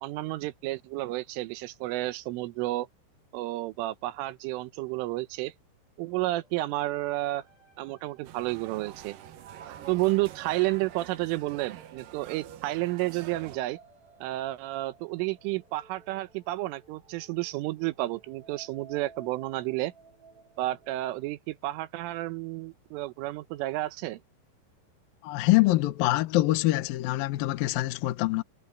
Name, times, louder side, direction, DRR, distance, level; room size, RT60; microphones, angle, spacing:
voice 1, 0.0-2.9 3.3-5.5 6.0-7.4 7.8-9.2 9.9-13.8 14.2-19.9 20.6-24.2, right 18 dB, 90° right, 3.6 m, -31 dB
sound 1, 6.1-21.3, right 6 dB, 50° right, 7.5 m, -56 dB
sound 2, 8.2-13.6, right 11 dB, 75° right, 2.1 m, -46 dB
voice 2, 25.2-28.4, left 18 dB, 80° left, 2.1 m, -24 dB
omnidirectional pair, 5.5 m